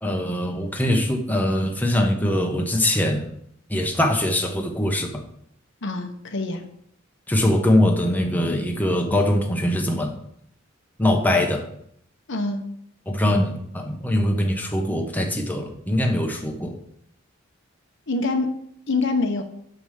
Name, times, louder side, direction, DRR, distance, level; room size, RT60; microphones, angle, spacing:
voice 1, 0.0-3.3 3.7-5.2 7.3-10.2 11.0-11.7 13.1-16.8, left 1 dB, 10° left, 2 dB, 1.1 m, -22 dB
voice 2, 5.8-6.7 12.3-12.7 18.1-18.5 18.9-19.4, left 3 dB, 65° left, 5 dB, 1.0 m, -25 dB
7.0 x 5.5 x 6.4 m, 0.69 s
head